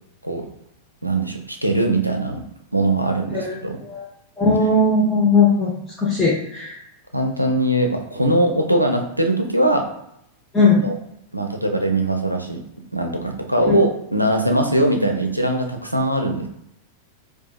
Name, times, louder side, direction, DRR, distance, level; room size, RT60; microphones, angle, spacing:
voice 1, 1.0-2.4 2.7-3.8 7.1-9.9 10.8-11.0 11.3-12.6 12.9-16.5, right 1 dB, 90° right, 3 dB, 0.4 m, -21 dB
voice 2, 4.4-5.7 6.0-6.7 10.5-10.9, left 3 dB, 10° left, -8 dB, 0.9 m, -17 dB
4.5 x 2.2 x 2.3 m, 0.76 s
figure-of-eight pair, 90°, 0 cm